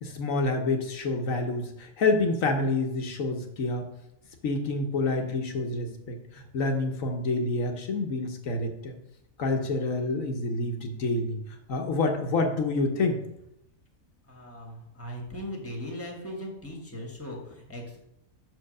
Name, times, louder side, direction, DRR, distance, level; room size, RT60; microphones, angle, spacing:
voice 1, 0.0-3.9 4.4-8.9 9.4-11.4 11.7-13.2, left 3 dB, 75° left, 3 dB, 1.2 m, -28 dB
voice 2, 14.2-18.0, equal, 10° left, 0 dB, 1.4 m, -39 dB
6.1 x 4.7 x 6.3 m, 0.82 s
omnidirectional pair, 1.4 m